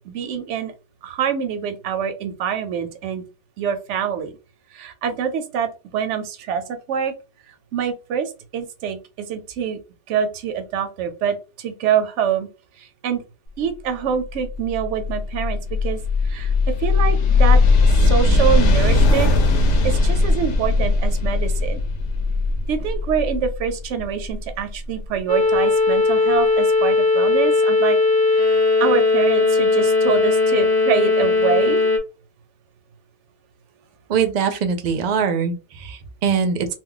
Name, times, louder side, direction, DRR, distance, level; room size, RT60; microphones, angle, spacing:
voice 1, 0.1-0.7 1.0-3.2 3.6-4.3 4.7-7.1 7.7-9.8 10.1-12.5 12.8-13.2 13.6-16.5 16.8-17.6 17.9-21.8 22.7-28.0 28.3-31.8, right 7 dB, 85° right, 8 dB, 0.9 m, -25 dB
sound 1, 14.2-25.0, left 3 dB, 80° left, 0.9 m, -19 dB
sound 2, 25.3-32.0, left 3 dB, 30° left, 0.4 m, -18 dB
voice 2, 34.1-36.7, right 6 dB, 55° right, 7 dB, 0.5 m, -22 dB
2.3 x 2.1 x 3.7 m, 0.31 s
omnidirectional pair, 1.2 m